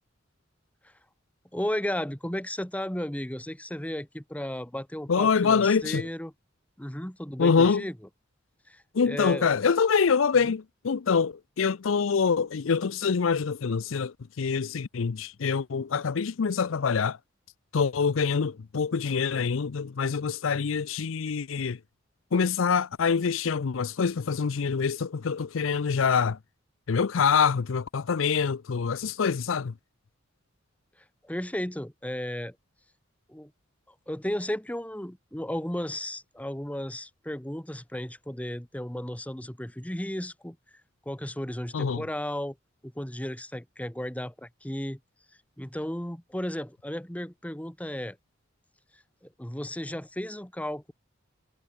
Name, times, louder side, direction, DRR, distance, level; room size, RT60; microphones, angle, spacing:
voice 1, 1.5-6.3 6.8-7.9 8.7-9.5 10.4-10.5 31.2-32.5 33.3-33.5 34.1-40.6 41.0-42.6 42.8-45.0 45.6-48.2 49.2-50.9, left 1 dB, 5° left, 1.5 m, -34 dB
voice 2, 5.1-6.0 7.4-7.9 8.9-17.2 17.7-21.8 22.3-26.4 26.9-29.7 41.7-42.0, left 5 dB, 75° left, 0.5 m, -25 dB
head